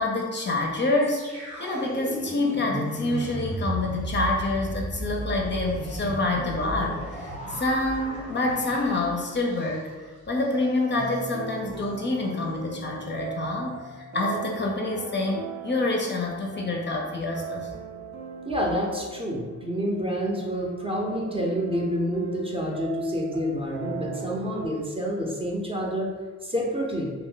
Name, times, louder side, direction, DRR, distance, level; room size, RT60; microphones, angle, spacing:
voice 1, 0.0-9.9 10.3-17.7, left 2 dB, 40° left, 0 dB, 0.5 m, -27 dB
sound 1, 1.0-10.1 10.3-10.5 10.9-11.3, right 1 dB, 80° right, 1.3 m, -35 dB
sound 2, 10.4-24.7, right 5 dB, 60° right, 0.7 m, -39 dB
voice 2, 18.4-26.1 26.4-27.1, equal, 20° right, -2 dB, 0.6 m, -28 dB
2.8 x 2.1 x 3.8 m, 1.3 s
cardioid pair, 90°, 30 cm